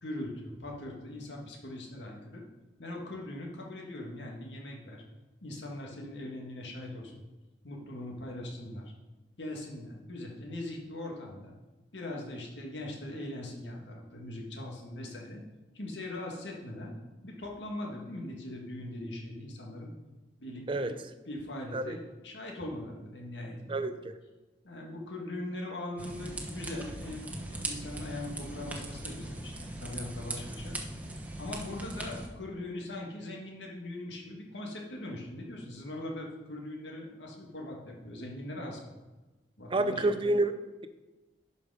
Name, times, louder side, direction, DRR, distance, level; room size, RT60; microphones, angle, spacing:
voice 1, 0.0-2.4 2.8-5.0 5.4-7.2 7.6-8.9 9.4-11.5 11.9-15.4 15.7-16.9 17.2-19.9 20.4-21.0 21.3-23.8 24.6-30.8 31.4-39.0 39.6-40.0, left 1 dB, 80° left, 0 dB, 2.0 m, -41 dB
voice 2, 23.7-24.1 39.7-40.9, right 2 dB, 30° right, 10 dB, 0.6 m, -29 dB
sound 1, 26.0-32.3, right 2 dB, 10° right, 1.1 m, -40 dB
11.0 x 5.3 x 5.0 m, 1.2 s
head